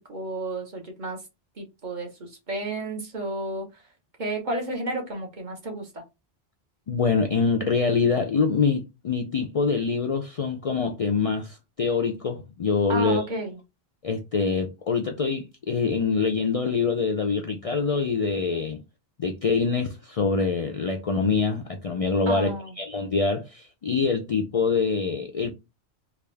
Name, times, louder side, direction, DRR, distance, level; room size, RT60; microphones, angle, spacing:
voice 1, 0.1-1.2 1.6-3.8 4.2-6.0 12.9-13.6 22.3-22.7, right 2 dB, 50° right, 1.2 m, -32 dB
voice 2, 6.9-13.2 14.0-18.8 19.2-25.5, left 5 dB, 50° left, 0.4 m, -25 dB
3.6 x 2.5 x 3.2 m
omnidirectional pair, 1.0 m